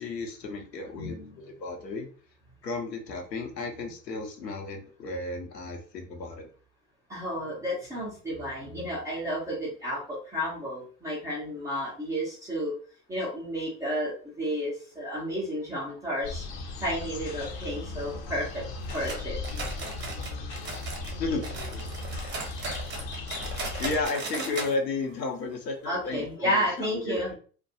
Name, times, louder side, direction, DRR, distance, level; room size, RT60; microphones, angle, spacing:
voice 1, 0.0-2.1 2.6-6.5 21.2-21.5 23.8-27.3, left 3 dB, 80° left, 3 dB, 0.8 m, -33 dB
voice 2, 0.9-1.3 7.1-12.7 13.1-16.5 16.8-18.6 18.9-19.4 25.9-27.3, equal, 5° right, -7 dB, 0.3 m, -32 dB
sound 1, 16.2-24.1, left 3 dB, 40° left, 0.6 m, -37 dB
sound 2, 18.9-21.2 21.4-24.7 25.0-25.1 25.5-25.6 26.2-26.3, right 3 dB, 25° right, 0.7 m, -37 dB
2.3 x 2.2 x 2.6 m, 0.41 s
figure-of-eight pair, 85°, 49 cm